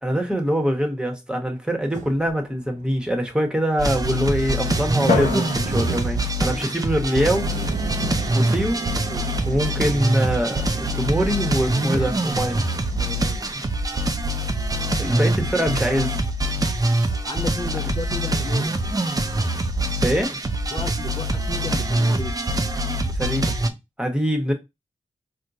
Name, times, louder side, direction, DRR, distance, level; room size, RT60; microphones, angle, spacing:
voice 1, 0.0-7.5 8.3-8.8 9.5-12.6 14.9-16.2 20.0-20.4 23.1-23.5 24.0-24.5, equal, 5° right, 1.0 m, -24 dB
sound 1, 1.9-2.4 3.4-16.9, right 4 dB, 75° right, 0.5 m, -36 dB
sound 2, 3.8-23.7, right 1 dB, 30° right, 0.5 m, -24 dB
Drum, 5.1-7.4, left 5 dB, 80° left, 0.9 m, -28 dB
voice 2, 9.7-10.1 11.6-12.2 12.9-13.4 15.0-15.2 17.2-18.8 20.7-22.4, left 3 dB, 35° left, 0.5 m, -34 dB
4.3 x 2.2 x 2.6 m
wide cardioid pair, 70°, 13 cm